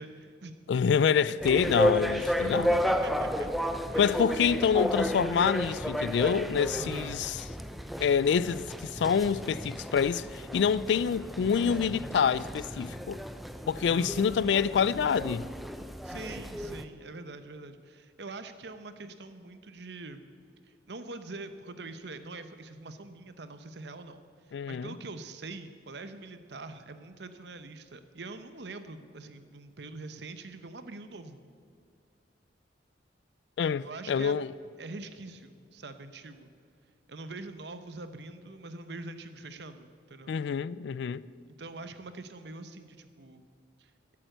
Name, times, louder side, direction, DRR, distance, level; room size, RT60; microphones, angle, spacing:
voice 1, 0.0-0.6 1.2-1.3 2.0-2.3 2.7-3.5 3.9-4.1 6.7-7.1 13.8-14.2 16.0-20.2 20.6-31.4 33.8-34.4 34.8-36.5 37.1-40.4 41.5-43.4 43.8-43.9, right 3 dB, 65° right, 0.9 m, -44 dB
voice 2, 0.7-2.7 4.0-7.4 8.0-13.2 13.7-15.5 24.5-24.9 33.6-34.5 40.3-41.2, left 7 dB, 70° left, 0.3 m, -27 dB
sound 1, 1.4-16.8, equal, ahead, 0.4 m, -33 dB
12.5 x 8.7 x 7.9 m
head